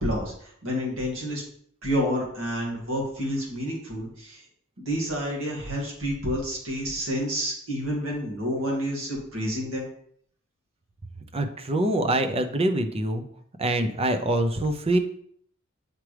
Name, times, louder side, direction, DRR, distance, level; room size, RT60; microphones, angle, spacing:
voice 1, 0.0-1.4 1.8-4.4 4.8-9.8, equal, 80° right, -2 dB, 2.2 m, -29 dB
voice 2, 11.3-13.3 13.6-15.0, right 1 dB, 30° right, 7 dB, 0.6 m, -24 dB
7.4 x 4.7 x 3.3 m, 0.64 s
head